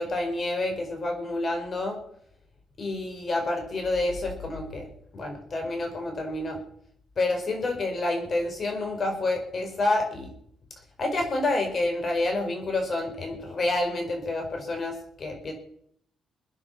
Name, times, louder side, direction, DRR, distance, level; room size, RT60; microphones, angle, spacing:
voice 1, 0.0-2.0 2.8-4.9 5.1-6.6 7.2-10.3 11.0-15.5, left 2 dB, 45° left, 4 dB, 5.1 m, -28 dB
23.5 x 9.8 x 5.8 m, 0.67 s
cardioid pair, 105°, 0 cm